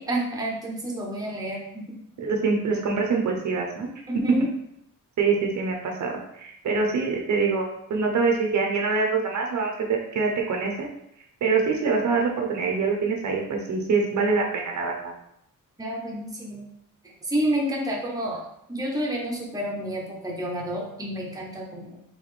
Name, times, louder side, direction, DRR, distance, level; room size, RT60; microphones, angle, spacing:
voice 1, 0.0-2.0 4.1-4.5 15.8-16.7 17.2-21.9, right 1 dB, 10° right, -3 dB, 0.8 m, -29 dB
voice 2, 2.2-3.9 5.2-10.9 11.4-15.1, right 4 dB, 55° right, 1 dB, 0.7 m, -25 dB
4.1 x 3.5 x 3.2 m, 0.78 s
wide cardioid pair, 175°, 34 cm